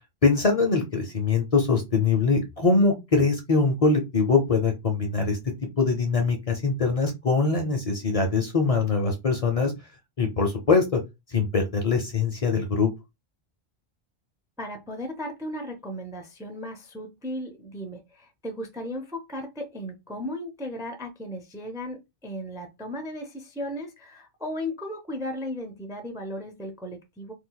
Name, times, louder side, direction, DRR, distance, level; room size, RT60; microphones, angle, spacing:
voice 1, 0.2-5.4 5.8-9.7 10.2-11.0 11.3-12.9, left 4 dB, 45° left, 4 dB, 0.6 m, -23 dB
voice 2, 14.6-27.3, left 1 dB, 5° right, 4 dB, 0.4 m, -36 dB
2.7 x 2.3 x 3.8 m, 0.23 s
omnidirectional pair, 1.0 m